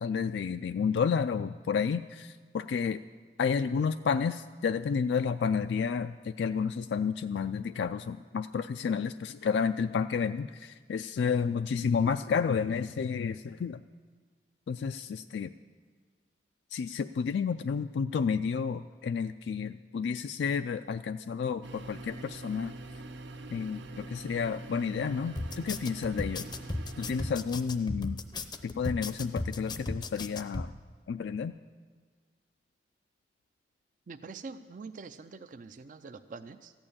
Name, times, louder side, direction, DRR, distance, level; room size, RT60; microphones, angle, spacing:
voice 1, 0.0-3.0 3.4-13.8 14.7-15.5 16.7-22.7 23.5-26.5 27.0-28.2 28.6-30.7 31.1-31.5, left 6 dB, 75° left, 8 dB, 0.3 m, -31 dB
sound 1, 21.6-27.3, right 2 dB, 90° right, 0.8 m, -44 dB
sound 2, 25.4-30.7, left 2 dB, 25° left, 0.6 m, -36 dB
voice 2, 34.1-36.7, right 4 dB, 45° right, 9 dB, 0.4 m, -45 dB
14.5 x 8.8 x 8.7 m, 1.5 s
head